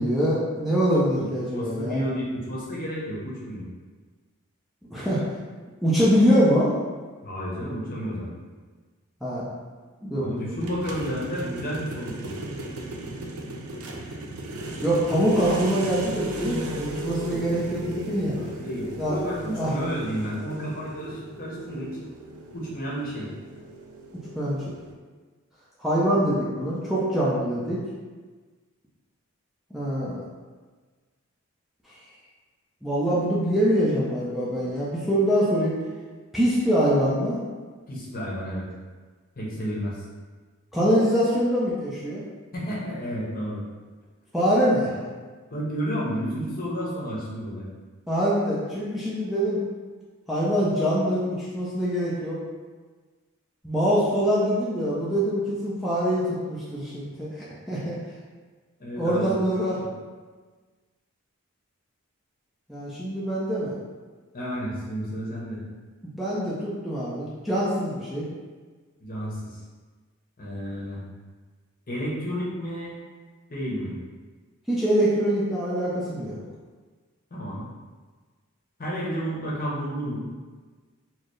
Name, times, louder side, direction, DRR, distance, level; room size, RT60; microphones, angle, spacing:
voice 1, 0.0-2.0 4.9-5.2 5.8-6.7 9.2-9.5 10.0-10.3 14.8-18.4 19.0-19.2 19.6-19.7 24.4-24.7 25.8-27.8 29.7-30.2 32.8-35.7 36.3-37.4 40.7-42.2 44.3-45.0 48.1-49.6 50.3-52.4 53.6-58.0 59.0-59.8 62.7-63.7 66.2-68.2 74.7-76.4, equal, ahead, -9 dB, 0.5 m, -24 dB
voice 2, 1.2-3.6 7.2-8.4 10.1-12.3 18.5-22.0 22.5-23.3 37.9-38.7 39.4-40.0 42.5-43.6 45.5-47.7 58.8-59.3 59.6-59.9 64.3-65.6 69.0-69.6 70.4-71.0 71.9-73.0 73.5-73.9 77.3-77.7 78.8-80.3, equal, 40° left, -5 dB, 0.9 m, -31 dB
sound 1, 10.6-24.9, right 1 dB, 80° right, 0.5 m, -36 dB
4.3 x 2.0 x 3.1 m, 1.4 s
head